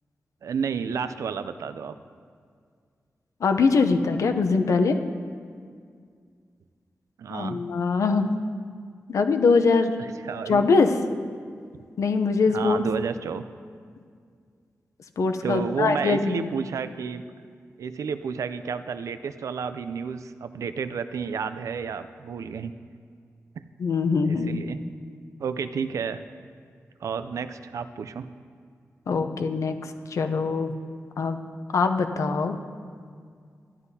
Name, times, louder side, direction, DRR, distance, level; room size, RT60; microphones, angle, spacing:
voice 1, 0.4-1.9 7.2-7.6 10.0-10.7 12.5-13.4 15.4-17.2 17.8-22.7 24.2-24.8 25.4-26.2 27.0-28.3, right 6 dB, 90° right, 11 dB, 0.4 m, -31 dB
voice 2, 3.4-5.0 7.3-8.3 9.1-9.9 10.5-11.0 12.0-12.8 15.2-16.5 23.8-24.6 29.1-29.8 30.1-30.7 31.2-31.4 31.7-32.6, left 4 dB, 85° left, 7 dB, 0.6 m, -22 dB
13.0 x 9.7 x 2.8 m, 2.1 s
wide cardioid pair, 80°, 5 cm